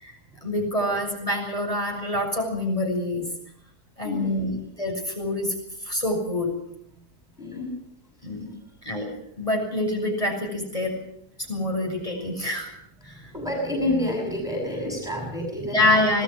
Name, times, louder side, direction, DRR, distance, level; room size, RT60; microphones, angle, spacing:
voice 1, 0.4-3.2 4.0-4.5 4.8-5.5 5.9-6.5 8.2-8.5 8.8-10.9 11.5-12.7 13.1-13.2 15.7-16.2, left 1 dB, 20° left, 0 dB, 7.2 m, -26 dB
voice 2, 4.0-4.6 7.4-7.7 13.3-16.2, left 1 dB, ahead, 0 dB, 6.1 m, -29 dB
26.0 x 19.0 x 6.4 m, 0.72 s
omnidirectional pair, 1.6 m